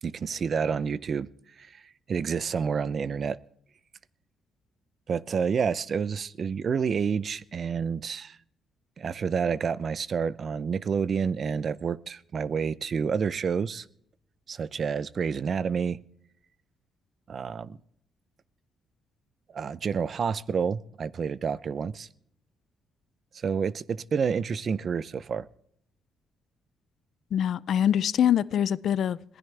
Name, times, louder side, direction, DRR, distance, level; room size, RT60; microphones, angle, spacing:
voice 1, 0.0-1.3 1.6-1.8 2.1-3.4 5.1-8.4 9.0-13.9 14.5-16.0 17.3-17.8 19.5-22.1 23.3-25.5, right 6 dB, 50° right, 0.6 m, -29 dB
voice 2, 27.3-29.4, left 9 dB, 65° left, 0.5 m, -24 dB
21.5 x 16.0 x 3.4 m
cardioid pair, 90°, 0 cm